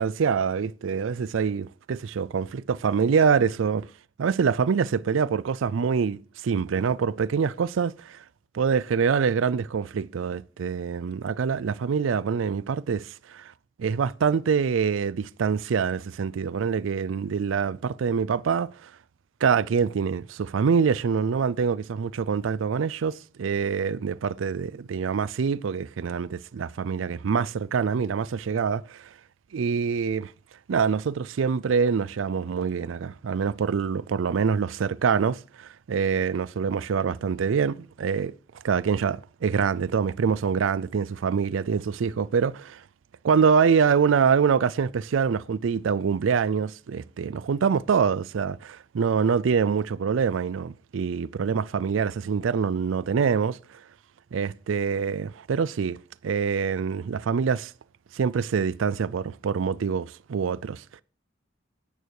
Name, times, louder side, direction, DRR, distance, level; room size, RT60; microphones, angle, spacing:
voice 1, 0.0-3.9 4.2-8.2 8.5-13.5 13.8-18.9 19.4-29.1 29.5-30.3 30.7-38.3 38.6-42.8 43.2-53.8 54.3-56.0 56.2-57.7 58.1-61.0, right 6 dB, 90° right, 0.4 m, -25 dB
11.0 x 9.1 x 4.8 m
head